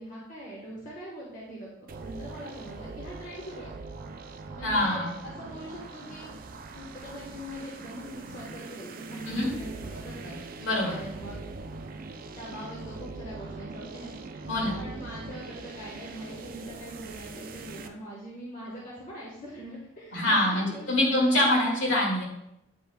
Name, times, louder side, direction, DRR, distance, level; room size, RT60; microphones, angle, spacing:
voice 1, 0.0-1.7 2.0-3.7 4.5-6.3 6.7-10.4 10.8-11.4 12.3-14.1 14.7-21.3, equal, 35° left, -5 dB, 1.2 m, -42 dB
sound 1, 1.9-17.9, right 3 dB, 45° right, 0.4 m, -42 dB
voice 2, 4.6-5.1 9.3-9.5 10.6-11.0 14.5-14.8 20.1-22.2, left 1 dB, 65° left, -3 dB, 2.1 m, -25 dB
8.6 x 5.5 x 2.3 m, 0.82 s
head